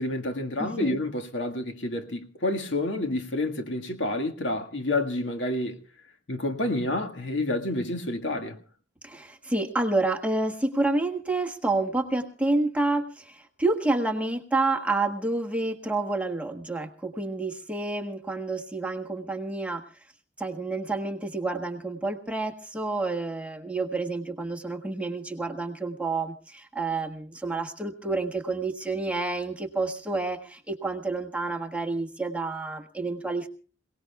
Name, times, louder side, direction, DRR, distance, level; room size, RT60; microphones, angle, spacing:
voice 1, 0.0-5.8 6.3-8.6, left 1 dB, 70° left, 1.7 m, -29 dB
voice 2, 0.6-1.0 9.0-19.9 20.4-33.5, right 2 dB, 5° right, 1.4 m, -29 dB
27.5 x 18.5 x 2.3 m
head